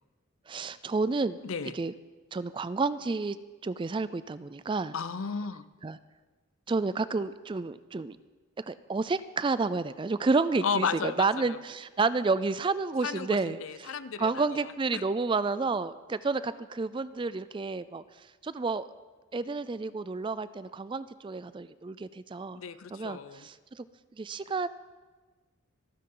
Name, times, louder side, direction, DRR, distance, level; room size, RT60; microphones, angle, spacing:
voice 1, 0.5-1.4 1.7-1.9 2.3-3.4 3.6-4.9 5.8-6.0 6.7-8.2 8.6-18.9 19.3-22.6 22.9-23.9 24.1-24.7, right 3 dB, 25° right, 15 dB, 0.3 m, -30 dB
voice 2, 1.4-1.7 4.9-5.7 10.6-11.6 13.0-14.5 14.9-15.0 22.6-23.5, left 6 dB, 75° left, 14 dB, 0.6 m, -33 dB
27.0 x 9.3 x 3.9 m, 1.3 s
head